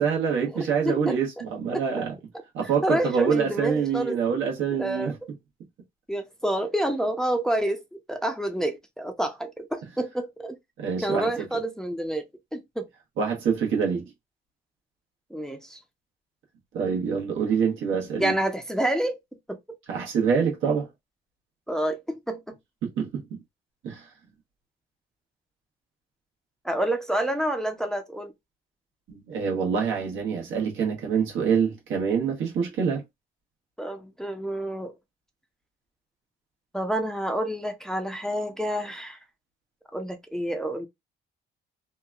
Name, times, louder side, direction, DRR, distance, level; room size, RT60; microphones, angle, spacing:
voice 1, 0.0-2.2 2.5-5.1 10.8-11.5 13.2-14.1 16.7-18.4 19.9-20.9 22.8-23.4 23.8-24.1 29.1-33.0, right 6 dB, 80° right, 1.1 m, -26 dB
voice 2, 0.5-1.2 1.7-1.8 2.8-4.2 4.7-5.1 6.1-7.8 8.1-10.6 11.0-12.3 12.5-12.9 15.3-15.8 18.2-19.2 19.5-19.6 21.7-22.6 26.6-28.3 33.8-34.9 36.7-39.2 39.9-40.9, right 1 dB, 5° left, 0.5 m, -28 dB
2.8 x 2.2 x 2.3 m
cardioid pair, 90°, 20 cm